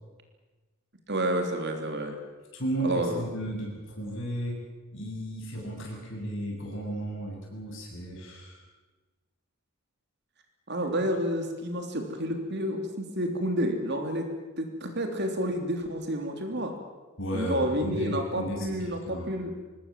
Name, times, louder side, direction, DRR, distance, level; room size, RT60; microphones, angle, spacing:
voice 1, 1.1-2.2 2.8-3.3 10.7-16.7 17.3-19.5, right 1 dB, 50° right, 4 dB, 3.4 m, -30 dB
voice 2, 2.5-4.6 4.9-8.6 17.2-19.5, right 1 dB, 60° left, 0 dB, 7.8 m, -34 dB
25.0 x 20.0 x 7.6 m, 1.2 s
head